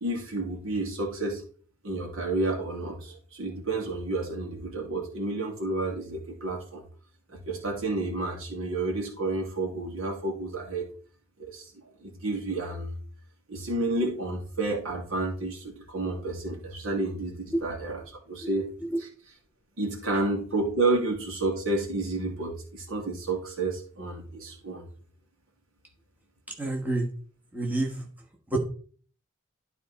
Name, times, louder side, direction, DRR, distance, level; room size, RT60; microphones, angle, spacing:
voice 1, 0.0-1.4 1.8-6.8 7.3-10.9 11.4-11.7 12.0-12.9 13.5-18.7 19.0-19.1 19.8-24.8, right 2 dB, 80° right, 0 dB, 2.6 m, -30 dB
voice 2, 18.4-19.0 20.1-20.2 26.6-27.1 27.5-28.1 28.5-28.6, right 2 dB, 10° right, 0 dB, 1.4 m, -29 dB
11.5 x 4.2 x 4.2 m, 0.43 s
head